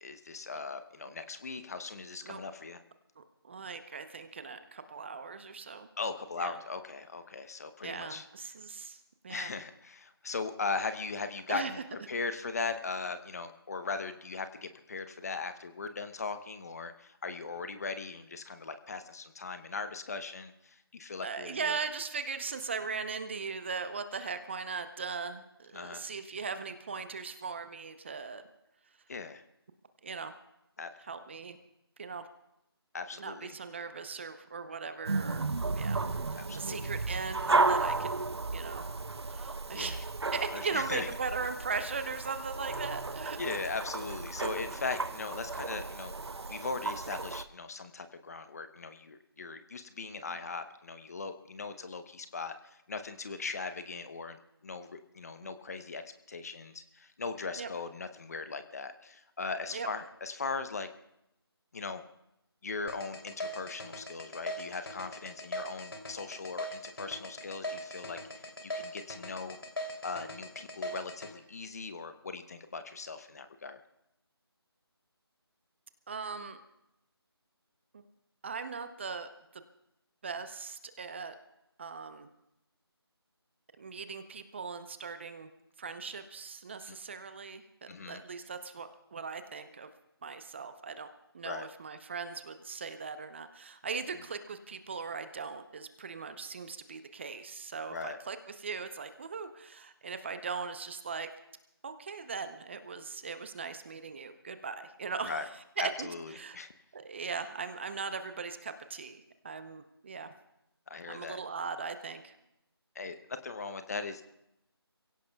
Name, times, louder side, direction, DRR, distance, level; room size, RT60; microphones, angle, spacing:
voice 1, 0.0-2.8 6.0-8.3 9.3-11.8 12.1-21.8 25.7-26.1 29.1-29.4 30.8-30.9 32.9-33.5 36.4-36.9 39.7-40.0 40.5-41.1 43.4-46.1 46.5-56.0 56.3-60.9 61.7-62.0 62.6-69.6 70.0-73.8 86.9-87.0 87.9-88.2 91.4-91.7 97.9-98.2 105.2-105.4 105.8-106.7 110.9-111.4 112.9-114.2, left 4 dB, 40° left, 10 dB, 0.9 m, -39 dB
voice 2, 3.2-5.9 6.4-6.5 7.8-9.5 11.5-11.7 21.2-28.4 30.0-30.3 31.0-31.6 32.0-32.3 33.2-35.4 35.8-36.0 36.3-38.1 38.5-38.8 39.3-40.0 40.3-43.4 50.3-50.4 55.4-55.5 57.6-57.7 59.7-59.9 76.1-76.6 77.9-78.0 78.4-79.6 80.2-81.3 81.8-82.3 83.8-85.5 85.8-89.9 90.2-91.1 91.3-101.3 101.8-105.3 105.8-106.1 106.3-106.6 106.9-110.3 111.1-112.3, right 5 dB, 25° right, 10 dB, 0.7 m, -39 dB
sound 1, 35.1-47.4, right 3 dB, 80° right, 0.8 m, -34 dB
sound 2, 62.9-71.3, left 1 dB, 60° left, 3.0 m, -39 dB
29.0 x 17.0 x 2.3 m, 0.85 s
figure-of-eight pair, 165°, 14 cm